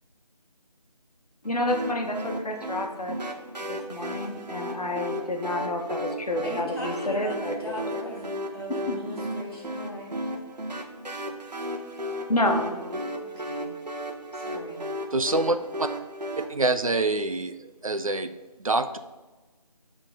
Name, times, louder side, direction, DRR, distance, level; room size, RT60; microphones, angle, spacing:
voice 1, 1.4-3.2 3.7-7.9 8.9-9.0 12.3-12.7, left 1 dB, 65° left, 2 dB, 1.2 m, -29 dB
sound 1, 1.7-16.4, equal, 80° right, 1.2 m, -34 dB
voice 2, 6.4-10.2 12.7-13.7 14.4-14.8, equal, 35° left, -3 dB, 2.0 m, -39 dB
voice 3, 15.1-15.9 16.5-17.6 17.8-18.3 18.6-19.0, right 2 dB, 55° right, 9 dB, 0.5 m, -25 dB
7.5 x 3.8 x 5.1 m, 1.2 s
figure-of-eight pair, 170°, 21 cm